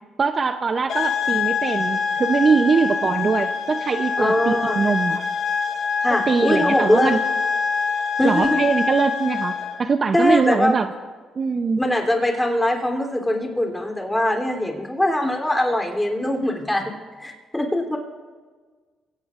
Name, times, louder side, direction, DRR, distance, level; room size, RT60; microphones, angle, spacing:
voice 1, 0.2-5.3 6.3-7.2 8.2-10.9 11.4-11.8, right 5 dB, 40° right, 8 dB, 0.6 m, -22 dB
sound 1, 0.9-9.8, left 6 dB, 75° left, 2.1 m, -25 dB
voice 2, 4.2-4.8 6.0-7.1 8.2-8.6 10.1-10.8 11.8-16.9 17.2-18.0, left 1 dB, 10° left, 1 dB, 3.2 m, -22 dB
24.0 x 17.5 x 2.5 m, 1.5 s
cardioid pair, 90°, 0 cm